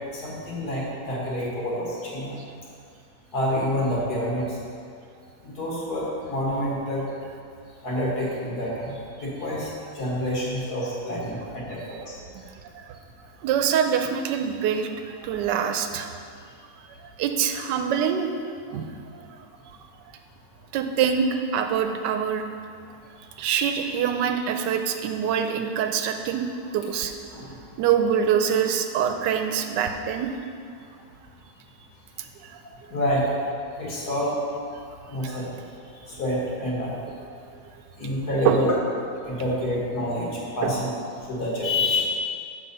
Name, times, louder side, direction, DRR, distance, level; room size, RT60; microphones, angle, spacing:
voice 1, 0.2-2.4 3.3-4.4 5.4-7.0 7.8-12.2 27.3-27.5 32.9-33.3 33.8-34.3 35.1-35.5 36.1-37.0 38.0-38.7 39.3-40.3 40.6-40.9 41.3-42.2, left 1 dB, 65° left, -5 dB, 2.1 m, -27 dB
voice 2, 12.5-13.0 13.4-16.1 17.0-18.3 18.7-18.9 19.2-19.3 20.7-21.3 21.5-22.4 23.4-26.5 26.7-27.1 27.8-30.3 32.4-32.5 35.2-35.3 38.4-38.6 40.6-40.7, right 8 dB, 85° right, 6 dB, 1.2 m, -25 dB
7.4 x 4.1 x 5.3 m, 2.3 s
omnidirectional pair, 1.8 m